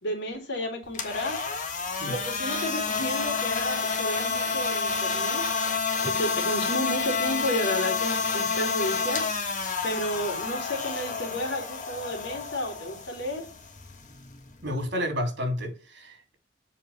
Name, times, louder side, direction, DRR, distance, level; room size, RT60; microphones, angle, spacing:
voice 1, 0.0-1.4 2.1-5.4 6.0-9.2 9.8-13.5, equal, 65° left, 3.4 m, -32 dB
sound 1, 0.8-14.9, left 5 dB, 45° left, 1.6 m, -29 dB
voice 2, 14.6-16.4, equal, 65° right, 3.0 m, -31 dB
7.5 x 5.2 x 5.5 m
head